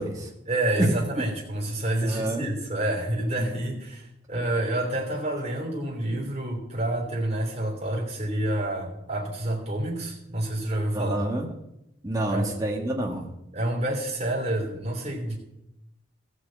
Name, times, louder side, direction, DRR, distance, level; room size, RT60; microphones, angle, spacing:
voice 1, 0.5-11.2 12.2-12.6 13.5-15.4, right 1 dB, 35° right, -1 dB, 3.1 m, -28 dB
voice 2, 2.0-2.5 3.4-3.7 10.9-11.5 12.0-13.3, right 1 dB, 20° right, 0 dB, 1.6 m, -28 dB
15.0 x 6.1 x 7.6 m, 0.86 s
head